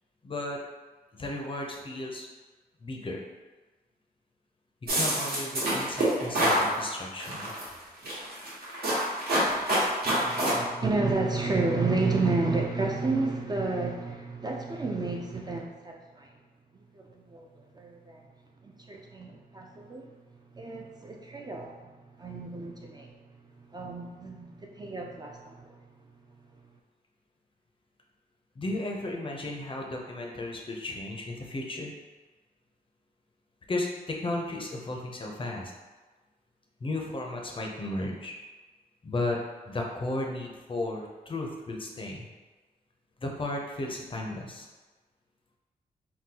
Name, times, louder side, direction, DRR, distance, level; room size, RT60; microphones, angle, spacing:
voice 1, 0.2-0.6 1.1-2.3 2.8-3.2 4.9-7.5 28.6-31.9 33.7-35.7 36.8-38.3 39.0-39.4 39.7-42.2 43.2-44.7, left 2 dB, 35° left, 0 dB, 0.5 m, -34 dB
sound 1, 4.9-6.7 7.2-7.6 8.0-10.5, right 1 dB, 75° right, 1.1 m, -26 dB
voice 2, 10.0-16.3 16.7-18.2 18.6-20.1 20.5-21.7 22.2-23.1 23.7-25.8, right 3 dB, 25° right, 0 dB, 0.3 m, -31 dB
3.7 x 2.2 x 2.8 m, 1.3 s
wide cardioid pair, 105°, 16 cm